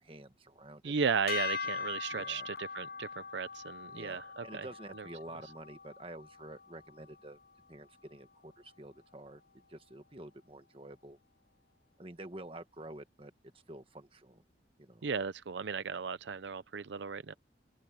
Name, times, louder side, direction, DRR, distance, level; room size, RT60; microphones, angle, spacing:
voice 1, 0.0-0.9 2.1-2.5 3.9-7.4 7.7-9.4 9.7-11.2 12.0-13.3 13.7-14.4 14.8-15.1, right 1 dB, 30° right, 1.5 m, -49 dB
voice 2, 0.8-4.7 5.0-5.1 15.0-17.3, right 5 dB, 75° right, 0.6 m, -35 dB
sound 1, 1.3-7.6, left 5 dB, 55° left, 0.6 m, -42 dB
open air
head